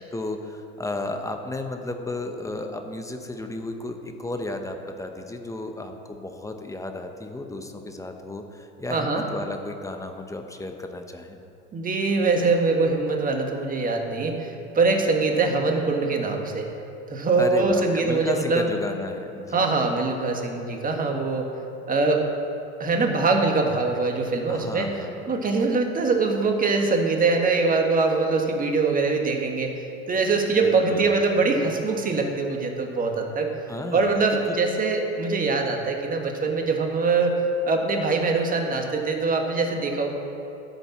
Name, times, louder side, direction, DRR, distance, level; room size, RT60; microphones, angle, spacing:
voice 1, 0.1-11.4 17.4-19.6 24.5-25.3 30.5-31.2 33.7-34.2, left 2 dB, 10° left, 5 dB, 0.9 m, -33 dB
voice 2, 8.9-9.2 11.7-16.7 17.1-18.7 19.5-21.5 21.9-22.2 22.8-24.9 25.3-29.7 30.1-33.5 33.9-37.4 37.6-40.1, right 3 dB, 25° right, 3 dB, 1.7 m, -23 dB
14.5 x 5.3 x 7.4 m, 2.7 s
hypercardioid pair, 95°, 34 cm